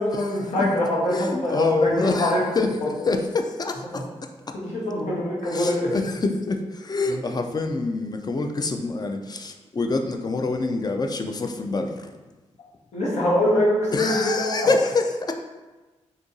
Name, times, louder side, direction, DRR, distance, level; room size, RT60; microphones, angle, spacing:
voice 1, 0.0-2.4 3.9-4.0 4.5-5.9 7.1-7.2 12.9-14.7, left 1 dB, 85° left, -5 dB, 1.0 m, -24 dB
voice 2, 1.1-4.0 5.5-12.1 13.9-15.3, left 3 dB, 35° left, 5 dB, 0.4 m, -26 dB
2.8 x 2.5 x 3.8 m, 1.2 s
cardioid pair, 55°, 12 cm